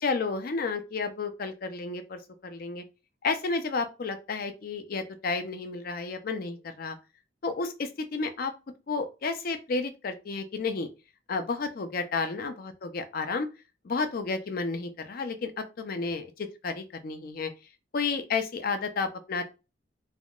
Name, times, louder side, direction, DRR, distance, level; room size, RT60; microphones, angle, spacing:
voice 1, 0.0-2.8 3.2-7.0 7.4-8.5 8.9-10.9 11.3-13.5 13.8-17.5 17.9-19.4, left 4 dB, 50° left, 0.4 m, -31 dB
3.5 x 2.2 x 2.4 m
head